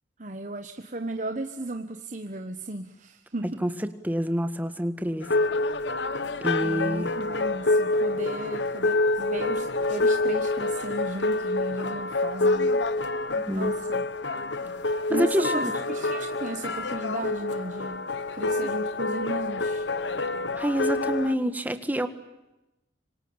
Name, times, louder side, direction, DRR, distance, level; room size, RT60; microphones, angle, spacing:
voice 1, 0.2-3.6 6.6-12.8 13.5-14.0 15.1-18.1 18.3-19.9, right 2 dB, 45° right, 6 dB, 1.2 m, -35 dB
voice 2, 3.6-5.3 6.4-7.1 13.4-13.7 15.1-15.7 20.6-22.1, equal, 10° right, 9 dB, 1.7 m, -27 dB
sound 1, 5.2-21.4, left 2 dB, 75° left, 1.3 m, -27 dB
26.0 x 26.0 x 8.8 m, 0.95 s
head